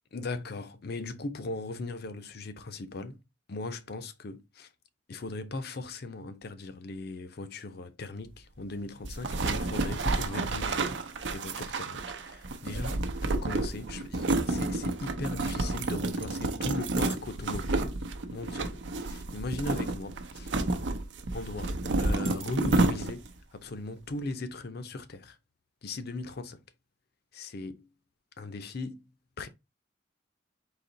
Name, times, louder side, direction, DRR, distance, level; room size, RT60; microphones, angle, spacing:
voice 1, 0.1-3.2 3.5-4.7 5.1-10.8 11.3-20.5 21.3-25.4 25.8-26.6 27.3-27.9 28.4-29.1 29.4-29.5, left 2 dB, 60° left, 0.6 m, -38 dB
sound 1, 9.0-23.4, right 2 dB, 85° right, 0.7 m, -30 dB
4.1 x 2.9 x 3.9 m
head